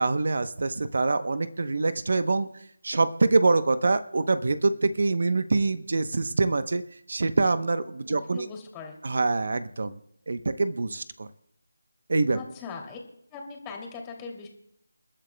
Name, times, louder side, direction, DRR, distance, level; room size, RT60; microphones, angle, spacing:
voice 1, 0.0-2.5 2.8-6.8 7.1-8.5 9.0-10.0 10.3-11.3 12.1-12.4, right 3 dB, 55° right, 11 dB, 0.9 m, -25 dB
voice 2, 8.3-9.0 12.3-13.0 13.3-14.5, left 5 dB, 15° left, 1 dB, 2.7 m, -40 dB
29.0 x 11.5 x 2.3 m, 0.74 s
figure-of-eight pair, 165°, 0 cm